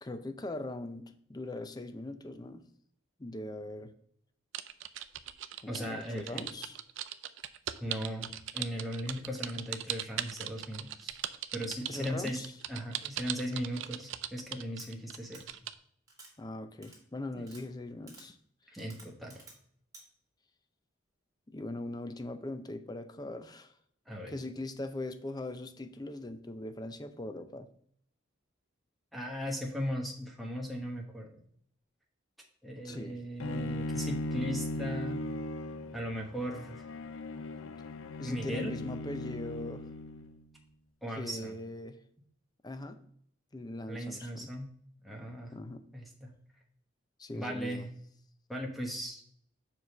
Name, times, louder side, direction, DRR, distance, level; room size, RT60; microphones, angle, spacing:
voice 1, 0.0-2.6 3.2-3.9 5.6-6.8 11.9-12.5 16.4-18.4 21.5-23.7 24.3-27.7 32.8-33.2 38.2-39.9 41.2-42.0 42.6-43.0 43.5-44.5 45.5-45.9 47.2-47.9, left 2 dB, 20° left, 9 dB, 0.5 m, -41 dB
sound 1, 4.5-15.7, right 11 dB, 70° right, 0.4 m, -39 dB
voice 2, 5.7-6.5 7.8-11.2 11.5-12.4 12.7-15.6 17.3-17.4 18.7-19.5 24.1-24.4 29.1-31.4 32.6-35.2 35.9-36.8 38.2-38.7 41.0-41.5 43.9-44.7 45.0-45.5 45.9-46.3 47.3-47.9 48.5-49.2, equal, ahead, -1 dB, 1.0 m, -38 dB
sound 2, 14.8-14.9 15.3-15.4 16.1-16.3 16.8-17.0 17.4-17.6 18.1-18.3 18.8-19.6 19.9-20.0, right 3 dB, 15° right, 1.7 m, -52 dB
Bowed string instrument, 33.4-40.5, left 1 dB, 90° left, 0.5 m, -38 dB
5.6 x 4.9 x 6.5 m, 0.65 s
head